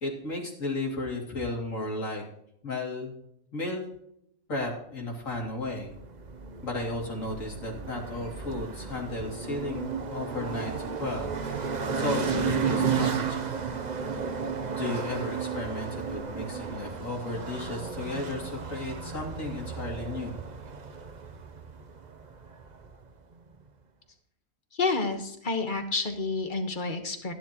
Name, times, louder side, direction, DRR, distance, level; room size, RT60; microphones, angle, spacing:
voice 1, 0.0-2.2 2.6-3.1 3.5-3.8 4.5-5.9 6.6-11.3 11.9-13.4 14.8-20.4, left 2 dB, 65° left, -1 dB, 3.2 m, -34 dB
sound 1, 5.6-23.0, right 5 dB, 40° right, 0.8 m, -33 dB
voice 2, 24.7-27.3, left 3 dB, 35° left, 6 dB, 1.5 m, -29 dB
13.5 x 11.0 x 3.0 m, 0.74 s
omnidirectional pair, 1.5 m